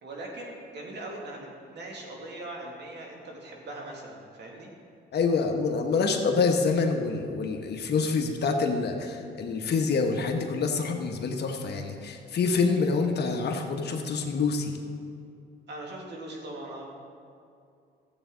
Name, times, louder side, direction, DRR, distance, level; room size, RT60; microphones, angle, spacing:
voice 1, 0.0-4.7 15.7-16.9, right 1 dB, 60° right, -1 dB, 2.2 m, -40 dB
voice 2, 5.1-14.8, left 4 dB, 55° left, 3 dB, 1.2 m, -26 dB
14.0 x 8.2 x 3.8 m, 2.5 s
cardioid pair, 90°, 20 cm